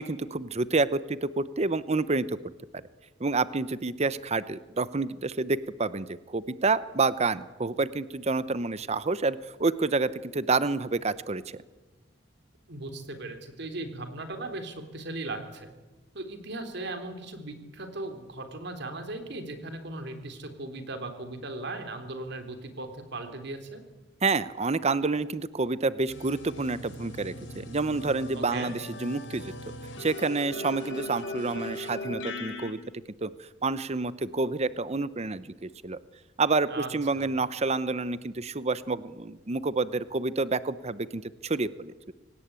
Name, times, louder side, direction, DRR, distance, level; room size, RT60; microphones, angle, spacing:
voice 1, 0.0-2.3 3.2-11.6 24.2-29.5 30.0-32.8 33.2-33.3 33.6-36.0 36.4-41.9, right 3 dB, 35° right, 15 dB, 0.8 m, -28 dB
voice 2, 12.7-15.7 16.1-23.8 28.4-28.7 36.7-36.9 37.2-37.3, right 2 dB, 60° right, 6 dB, 3.5 m, -38 dB
sound 1, 26.1-32.7, left 1 dB, 70° left, 3.9 m, -39 dB
25.5 x 18.5 x 9.0 m, 1.2 s
head